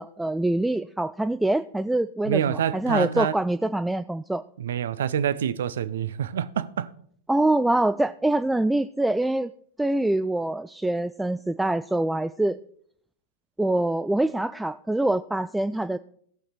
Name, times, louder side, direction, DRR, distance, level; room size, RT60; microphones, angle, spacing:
voice 1, 0.0-4.4 7.3-9.5 9.8-12.6 13.6-16.0, right 1 dB, 5° right, 0.3 m, -25 dB
voice 2, 2.2-3.3 4.6-6.9, right 9 dB, 60° right, 0.6 m, -26 dB
16.0 x 6.7 x 4.3 m
figure-of-eight pair, 90°, 0 cm